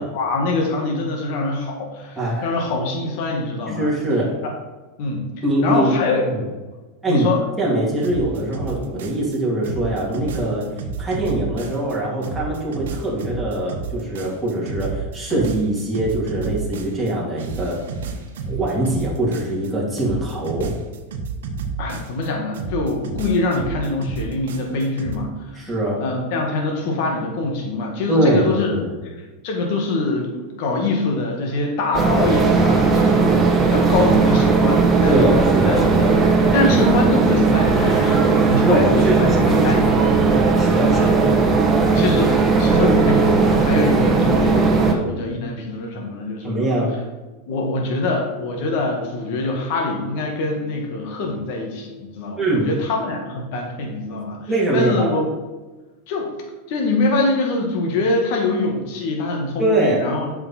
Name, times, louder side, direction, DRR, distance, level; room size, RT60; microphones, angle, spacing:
voice 1, 0.0-3.9 4.4-4.5 5.0-5.3 5.6-6.2 7.1-7.4 21.6-25.3 26.0-28.8 29.4-35.3 35.7-36.1 36.5-40.0 40.3-40.4 40.9-41.1 41.9-46.6 47.5-55.2 56.1-56.3 56.7-60.3, left 2 dB, 60° left, 1 dB, 1.9 m, -24 dB
voice 2, 2.2-2.5 3.7-4.3 5.4-5.9 6.3-6.4 7.0-7.3 7.6-10.6 11.0-17.8 18.5-20.7 25.5-26.0 28.1-29.0 35.0-36.2 38.6-40.1 40.6-41.2 46.4-46.9 52.4-52.7 54.5-55.2 59.6-60.0, right 1 dB, 5° right, -7 dB, 2.6 m, -22 dB
sound 1, 8.0-9.4 9.6-12.0 12.2-17.1 17.4-19.7 20.0-22.3 22.5-25.2, right 5 dB, 90° right, 1.1 m, -30 dB
sound 2, 31.9-44.9, right 4 dB, 20° right, 1.2 m, -17 dB
7.9 x 5.7 x 4.4 m, 1.2 s
supercardioid pair, 130°, 0 cm